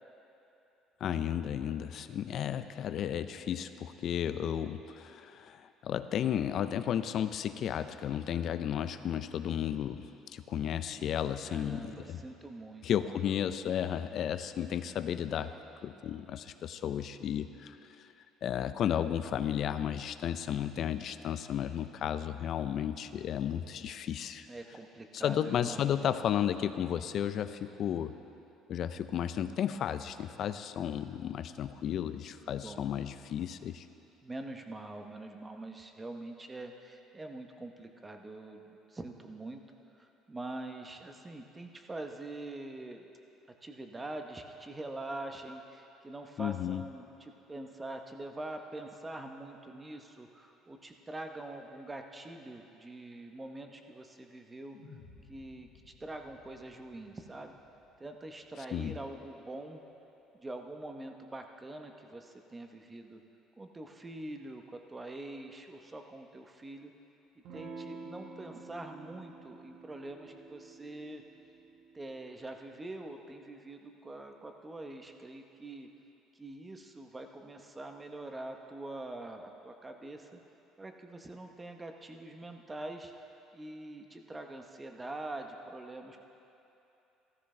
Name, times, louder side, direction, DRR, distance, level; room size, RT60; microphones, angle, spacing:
voice 1, 1.0-12.2 12.8-15.5 15.8-17.8 18.4-24.5 25.1-28.1 28.7-33.9 46.4-46.8 58.7-59.0, left 9 dB, 45° left, 11 dB, 0.4 m, -33 dB
voice 2, 11.4-12.9 13.6-13.9 24.5-26.2 32.5-32.9 34.2-39.6 40.0-43.0 43.6-54.8 55.3-55.7 56.0-57.6 58.0-59.8 60.3-63.2 63.6-66.9 67.5-71.2 71.9-75.9 76.3-80.4 80.8-83.1 83.5-86.2, right 2 dB, 15° right, 4 dB, 0.8 m, -44 dB
sound 1, 54.7-59.1, left 4 dB, 65° left, 1.7 m, -58 dB
Electric guitar / Strum, 67.4-72.6, right 4 dB, 55° right, 1.2 m, -49 dB
15.0 x 13.5 x 3.3 m, 2.9 s
cardioid pair, 140°, 0 cm